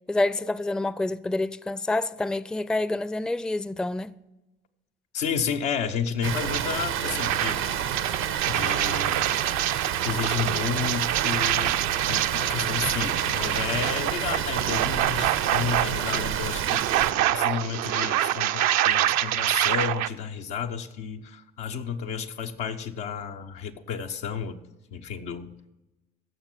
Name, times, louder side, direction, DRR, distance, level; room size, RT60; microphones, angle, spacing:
voice 1, 0.1-4.1, left 2 dB, 5° left, 0.4 m, -27 dB
voice 2, 5.1-7.7 8.5-9.4 10.0-11.8 12.1-17.0 17.3-25.6, left 7 dB, 85° left, 0.9 m, -32 dB
Water, 6.2-17.1, right 9 dB, 85° right, 1.0 m, -29 dB
sound 1, 6.5-6.6 7.0-20.1, right 13 dB, 65° right, 0.5 m, -26 dB
16.0 x 6.6 x 6.0 m
hypercardioid pair, 50°, 29 cm